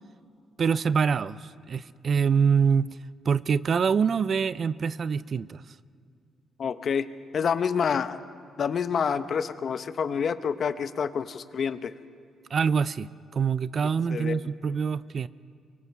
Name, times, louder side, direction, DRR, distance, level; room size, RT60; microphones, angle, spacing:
voice 1, 0.6-2.9 3.3-5.6 12.5-15.3, right 6 dB, 50° right, 17 dB, 0.5 m, -25 dB
voice 2, 6.6-7.1 7.3-8.2 8.6-11.9 14.1-14.5, left 6 dB, 55° left, 12 dB, 0.8 m, -28 dB
24.0 x 23.5 x 4.7 m, 2.2 s
cardioid pair, 90°, 0 cm